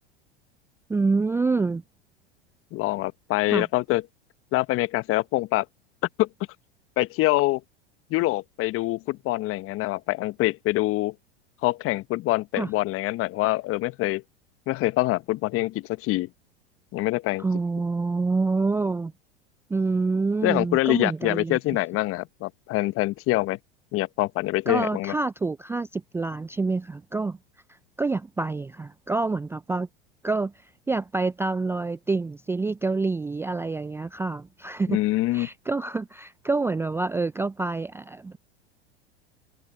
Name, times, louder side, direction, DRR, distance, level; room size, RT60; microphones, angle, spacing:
voice 1, 0.9-1.8 3.5-3.7 12.6-12.7 17.4-19.1 19.7-21.6 24.7-27.4 28.0-29.9 30.2-30.5 30.9-35.0 35.3-38.4, right 3 dB, 10° right, 0.5 m, -27 dB
voice 2, 2.7-4.0 4.5-5.6 6.2-6.3 7.0-7.6 8.1-11.1 11.6-14.2 14.7-16.3 16.9-17.4 20.4-23.6 23.9-25.1 34.9-35.5, left 18 dB, 45° left, 1.4 m, -25 dB
hypercardioid pair, 90°, 32 cm